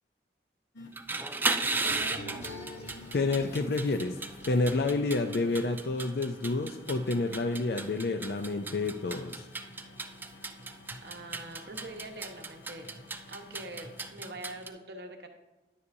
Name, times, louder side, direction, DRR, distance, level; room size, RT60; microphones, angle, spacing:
sound 1, 0.7-14.1, left 3 dB, 85° left, 1.0 m, -54 dB
sound 2, 0.8-14.7, right 3 dB, 10° right, 0.3 m, -36 dB
sound 3, 1.6-5.3, left 1 dB, 35° left, 0.8 m, -46 dB
voice 1, 1.8-2.6 11.0-12.9 13.3-15.3, right 2 dB, 60° right, 3 dB, 1.1 m, -44 dB
voice 2, 3.1-4.2 4.5-9.5, left 3 dB, 55° left, 7 dB, 0.4 m, -29 dB
10.5 x 9.6 x 2.7 m, 1.1 s
head